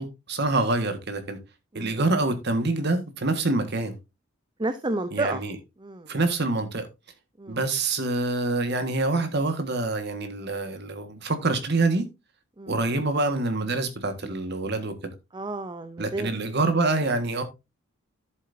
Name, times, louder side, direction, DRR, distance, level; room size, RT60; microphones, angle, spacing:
voice 1, 0.0-1.4 1.7-3.9 5.1-5.6 6.1-6.9 7.5-12.1 12.7-15.1 16.0-17.4, right 2 dB, 50° right, 1.6 m, -26 dB
voice 2, 4.6-5.4 5.8-6.1 7.4-7.6 12.6-12.8 15.3-16.3, right 2 dB, 20° right, 0.5 m, -31 dB
10.5 x 8.0 x 2.7 m
head